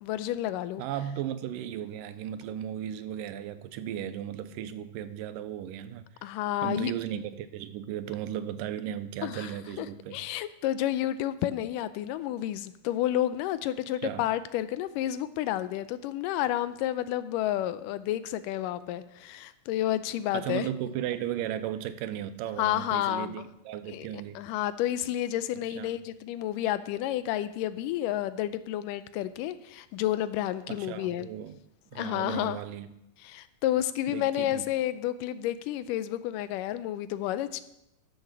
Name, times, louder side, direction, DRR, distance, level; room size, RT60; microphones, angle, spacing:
voice 1, 0.0-0.8 6.2-6.9 9.2-9.5 9.8-20.7 22.6-23.5 23.9-24.1 24.4-31.3 32.0-32.6 33.2-37.6, left 13 dB, 90° left, 2.2 m, -30 dB
voice 2, 0.8-6.3 6.6-10.2 14.0-14.2 20.3-24.4 25.8-26.0 30.7-31.6 31.9-32.9 34.1-34.7, right 10 dB, 90° right, 2.3 m, -36 dB
11.5 x 6.6 x 6.1 m
omnidirectional pair, 3.7 m